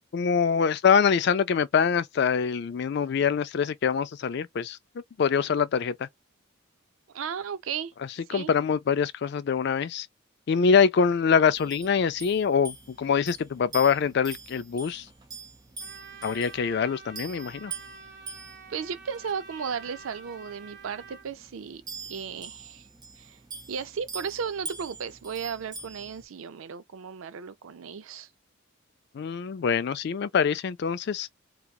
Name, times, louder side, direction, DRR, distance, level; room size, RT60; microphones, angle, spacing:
voice 1, 0.1-4.8 5.2-6.1 8.3-10.1 10.5-15.0 16.2-17.7 29.1-31.3, left 6 dB, 55° left, 0.3 m, -24 dB
voice 2, 7.1-7.9 8.3-8.5 18.7-21.8 22.1-22.9 23.2-23.4 23.7-28.3, right 6 dB, 75° right, 0.4 m, -35 dB
sound 1, 11.5-26.3, right 4 dB, 20° right, 0.6 m, -44 dB
Trumpet, 15.8-21.3, right 4 dB, 50° right, 1.2 m, -47 dB
2.8 x 2.3 x 2.3 m
head